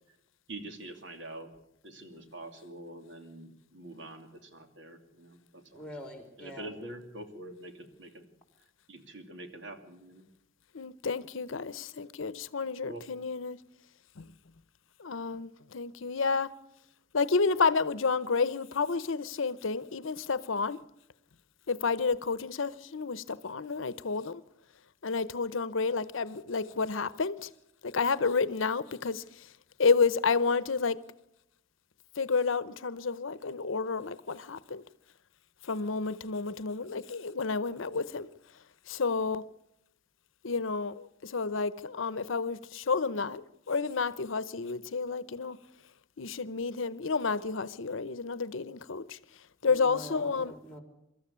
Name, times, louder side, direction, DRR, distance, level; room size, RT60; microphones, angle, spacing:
voice 1, 0.5-1.5 1.8-5.8 6.4-8.3 8.9-10.3 12.8-13.0, right 1 dB, 65° right, 2.7 m, -45 dB
voice 2, 5.7-6.7 49.6-50.8, equal, 5° left, 3.6 m, -45 dB
voice 3, 10.7-13.6 14.2-14.3 15.0-16.5 17.1-20.8 21.7-24.4 25.0-27.5 27.8-29.5 29.8-31.0 32.2-34.8 35.6-38.3 38.9-39.4 40.4-45.6 46.2-49.2 49.6-50.5, left 4 dB, 80° left, 0.8 m, -30 dB
24.0 x 13.5 x 8.5 m
head